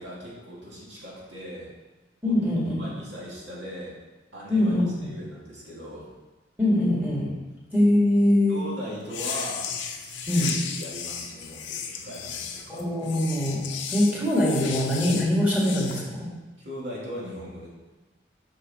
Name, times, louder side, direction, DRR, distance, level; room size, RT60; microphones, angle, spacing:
voice 1, 0.0-1.7 2.2-2.3 2.8-3.9 4.3-4.7 5.0-6.1 8.5-9.7 9.9-10.5 10.8-12.8 16.6-17.7, equal, 75° right, -6 dB, 2.2 m, -39 dB
voice 2, 2.2-2.8 4.5-5.1 6.6-7.3 7.7-8.6 10.3-10.5 12.7-16.3, left 1 dB, 10° right, -6 dB, 1.9 m, -23 dB
sound 1, 9.0-16.0, left 7 dB, 80° left, 0.7 m, -34 dB
5.8 x 5.5 x 4.2 m, 1.2 s
head